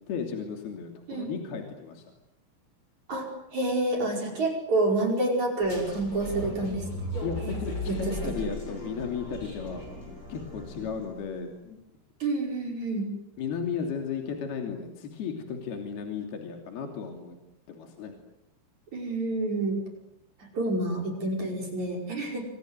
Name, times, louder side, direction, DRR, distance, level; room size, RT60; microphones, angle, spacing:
voice 1, 0.1-2.1 7.2-9.8 10.1-11.8 13.4-17.4 17.7-18.2, left 6 dB, 55° left, 4 dB, 4.6 m, -35 dB
voice 2, 3.1-7.0 7.4-7.6 7.9-8.1 12.2-13.1 18.9-19.8 20.4-22.4, right 2 dB, 35° right, 2 dB, 6.1 m, -28 dB
sound 1, 5.6-11.2, left 1 dB, 25° left, 8.1 m, -37 dB
26.5 x 26.5 x 8.0 m, 0.80 s
omnidirectional pair, 5.7 m